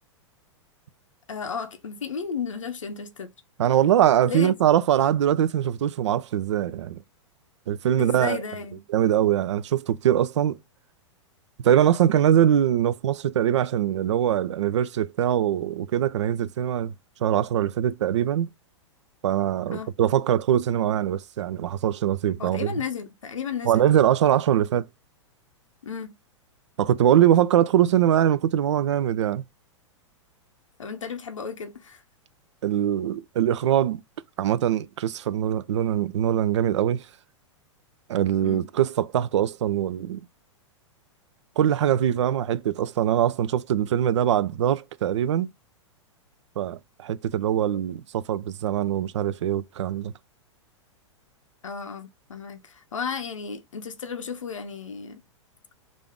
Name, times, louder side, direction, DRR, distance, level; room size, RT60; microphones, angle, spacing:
voice 1, 1.3-3.3 4.3-4.5 8.0-8.8 19.7-19.9 22.4-23.9 25.8-26.1 30.8-32.0 38.4-38.6 51.6-55.2, left 6 dB, 85° left, 0.6 m, -33 dB
voice 2, 3.6-7.0 7.7-8.4 8.9-10.6 11.6-16.9 17.2-18.5 19.2-22.7 23.7-24.9 26.8-29.4 32.6-34.0 34.4-37.0 38.1-40.2 41.6-45.5 46.6-50.1, right 10 dB, 65° right, 0.4 m, -22 dB
3.4 x 2.5 x 3.5 m
hypercardioid pair, 105°, 16 cm